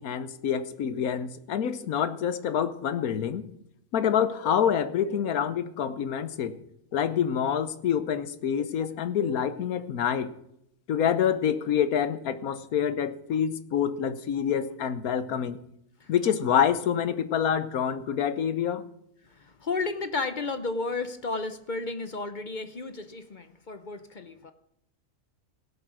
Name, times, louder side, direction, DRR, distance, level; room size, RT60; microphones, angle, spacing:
voice 1, 0.0-3.4 3.9-6.6 6.9-10.3 10.9-15.6 16.1-18.8, left 8 dB, 80° left, 13 dB, 1.3 m, -27 dB
voice 2, 19.2-24.5, left 3 dB, 40° left, 10 dB, 0.8 m, -33 dB
17.0 x 7.7 x 6.2 m, 0.76 s
omnidirectional pair, 1.5 m